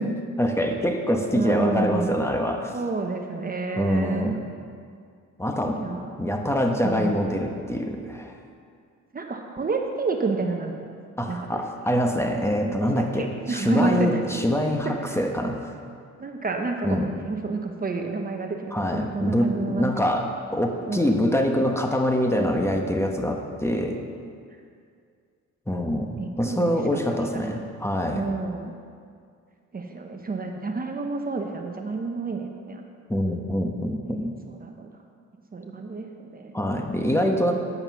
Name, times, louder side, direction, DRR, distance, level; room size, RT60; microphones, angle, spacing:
voice 1, 0.0-2.7 3.8-4.4 5.4-5.8 6.2-8.3 11.2-15.6 16.8-17.1 18.7-24.0 25.7-28.2 33.1-34.3 36.5-37.5, equal, 10° left, 3 dB, 1.1 m, -25 dB
voice 2, 1.3-2.1 2.7-4.3 5.8-6.1 6.8-7.2 9.1-10.7 11.3-11.6 13.0-14.1 14.8-15.2 16.2-19.9 20.9-21.3 26.2-26.8 27.3-27.7 28.1-28.7 29.7-32.8 33.7-34.9 35.5-36.8, right 3 dB, 30° right, 3 dB, 1.0 m, -30 dB
9.2 x 8.8 x 5.9 m, 2.2 s
cardioid pair, 90°, 30 cm